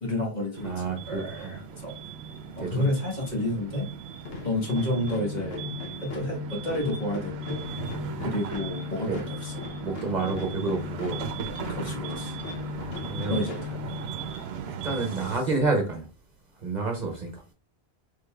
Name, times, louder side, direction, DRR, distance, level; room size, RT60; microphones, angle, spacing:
voice 1, 0.0-1.9 2.6-3.9 4.4-5.7 6.0-7.6 8.2-9.5 11.7-12.4 13.3-14.0, left 1 dB, 45° left, -1 dB, 1.4 m, -30 dB
sound 1, 0.5-15.4, right 7 dB, 75° right, 0.8 m, -38 dB
voice 2, 0.6-1.6 2.6-2.8 8.0-8.3 9.1-9.2 9.8-11.2 13.1-13.5 14.7-16.0 16.6-17.3, right 3 dB, 45° right, 3 dB, 0.9 m, -29 dB
sound 2, 4.2-14.4, left 6 dB, 70° left, 1.0 m, -37 dB
5.1 x 3.5 x 2.3 m, 0.33 s
omnidirectional pair, 1.1 m